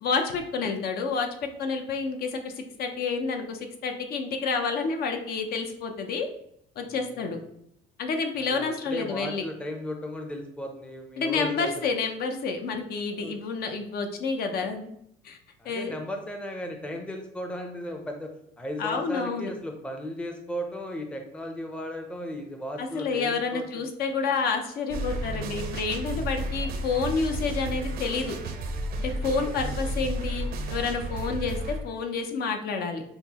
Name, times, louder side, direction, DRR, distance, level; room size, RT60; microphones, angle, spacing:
voice 1, 0.0-1.3 1.6-2.5 2.8-6.3 6.8-7.4 8.0-9.4 11.2-14.9 15.2-15.4 15.6-15.9 18.8-19.5 22.8-28.4 29.0-33.0, left 4 dB, 60° left, 5 dB, 0.6 m, -29 dB
voice 2, 8.5-11.9 13.2-13.4 15.6-18.3 18.6-23.8 29.2-29.6, equal, 5° left, 3 dB, 0.5 m, -36 dB
sound 1, 24.9-31.8, right 1 dB, 60° right, 0.6 m, -32 dB
5.6 x 2.0 x 2.9 m, 0.77 s
cardioid pair, 110°, 18 cm